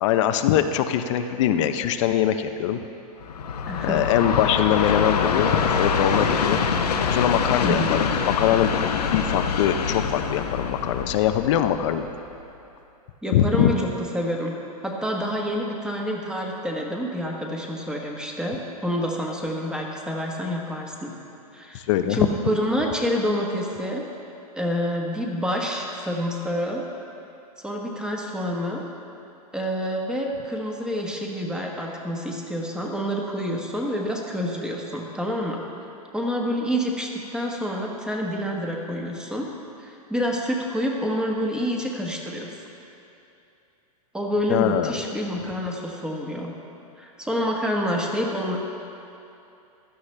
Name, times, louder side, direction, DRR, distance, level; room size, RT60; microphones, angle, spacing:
voice 1, 0.0-2.8 3.8-6.6 7.1-8.1 8.4-8.7 9.1-12.1 13.3-13.8 21.7-22.3 44.5-45.0, left 10 dB, 50° left, 8 dB, 0.6 m, -22 dB
Train, 3.2-12.4, left 6 dB, 85° left, 1.0 m, -25 dB
voice 2, 3.7-4.1 7.6-8.1 13.2-13.9 14.1-14.5 14.8-21.1 21.5-21.8 22.1-24.0 24.6-26.8 27.6-28.8 29.5-35.6 36.1-39.5 39.8-42.5 44.1-46.5 47.0-48.6, equal, 5° right, -1 dB, 1.3 m, -27 dB
15.5 x 11.5 x 3.3 m, 2.7 s
hypercardioid pair, 140°, 20 cm